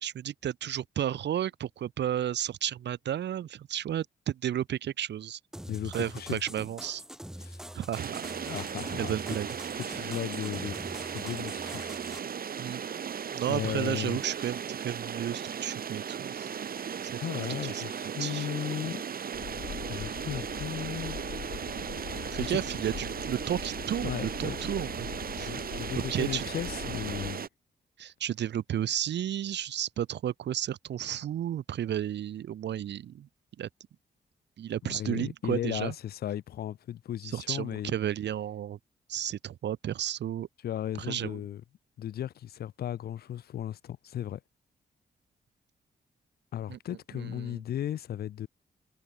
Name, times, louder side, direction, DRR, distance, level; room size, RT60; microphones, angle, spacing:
voice 1, 0.0-5.4 5.8-7.0 7.7-8.2 8.9-9.5 9.8-10.1 12.6-12.8 13.3-16.6 17.0-17.2 17.6-17.8 18.2-18.5 22.3-25.1 25.3-25.5 26.0-26.5 28.0-33.3 33.6-33.7 34.6-35.9 37.2-38.8 39.1-40.5 41.0-41.4 46.7-46.8 47.1-47.6, right 10 dB, 85° right, 1.0 m, -33 dB
sound 1, 5.5-12.2, equal, 5° right, 0.5 m, -44 dB
voice 2, 5.7-6.4 7.4-7.6 8.4-9.2 9.7-12.0 13.5-14.2 17.2-19.0 19.9-21.2 21.7-21.8 22.4-22.5 24.0-24.6 25.4-27.4 34.8-37.9 40.6-41.6 42.0-44.4 46.5-48.5, left 11 dB, 65° left, 0.4 m, -36 dB
sound 2, 7.9-27.5, right 7 dB, 55° right, 1.0 m, -37 dB
sound 3, 19.3-27.3, left 10 dB, 85° left, 2.2 m, -42 dB
cardioid pair, 70°, 18 cm